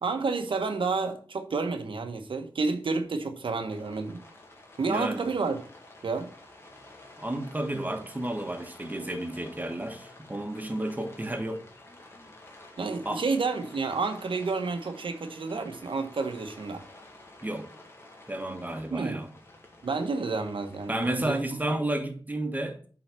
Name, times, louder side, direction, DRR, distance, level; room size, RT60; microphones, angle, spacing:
voice 1, 0.0-4.2 4.8-5.6 6.0-6.3 12.8-16.8 18.9-19.2 19.8-21.4, right 4 dB, 80° right, 1.2 m, -30 dB
Rain, 3.7-21.3, left 2 dB, 30° left, 1.7 m, -51 dB
voice 2, 4.9-5.3 7.2-11.6 13.0-13.2 17.4-17.7 18.3-19.3 20.9-22.9, right 1 dB, 20° right, 1.3 m, -32 dB
8.7 x 4.0 x 6.0 m
wide cardioid pair, 105°, 9 cm